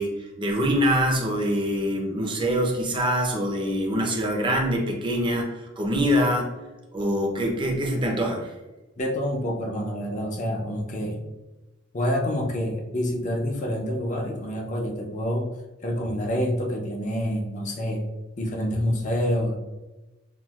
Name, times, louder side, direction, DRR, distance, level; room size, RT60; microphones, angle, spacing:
voice 1, 0.0-6.5 6.9-8.5, equal, 25° right, -1 dB, 0.7 m, -24 dB
voice 2, 9.0-11.3 11.9-15.5 15.8-18.0 18.4-19.6, equal, 40° left, 1 dB, 0.6 m, -27 dB
5.8 x 2.4 x 2.4 m, 1.1 s
head